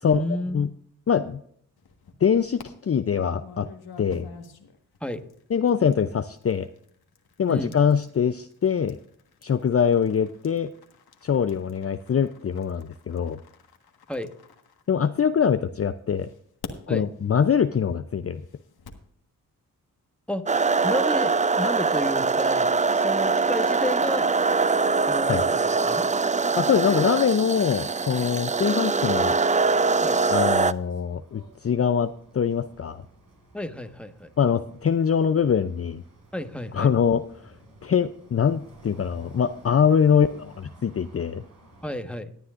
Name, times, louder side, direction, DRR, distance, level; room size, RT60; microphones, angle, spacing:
voice 1, 0.0-0.7 5.0-5.2 7.5-7.8 14.1-14.3 16.9-17.1 20.3-20.4 20.8-24.3 25.1-26.1 30.0-30.2 33.5-34.3 36.3-36.9 40.1-40.3 41.8-42.3, left 1 dB, 5° left, 7 dB, 1.4 m, -31 dB
voice 2, 1.1-1.4 2.2-3.7 4.0-4.3 5.5-6.7 7.4-9.0 9.4-10.7 11.2-13.4 14.9-16.3 16.9-18.4 25.3-25.4 26.6-29.3 30.3-33.0 34.4-36.0 36.7-37.5 37.8-40.3 40.8-41.4, left 7 dB, 40° left, 10 dB, 0.6 m, -23 dB
sound 1, 1.8-2.7 3.4-15.4 16.1-19.1, left 5 dB, 75° left, 1.6 m, -48 dB
sound 2, 20.5-30.7, right 4 dB, 20° right, 0.4 m, -23 dB
sound 3, 29.6-42.0, right 1 dB, 60° right, 5.2 m, -53 dB
18.0 x 9.4 x 2.5 m, 0.63 s
supercardioid pair, 40°, 38 cm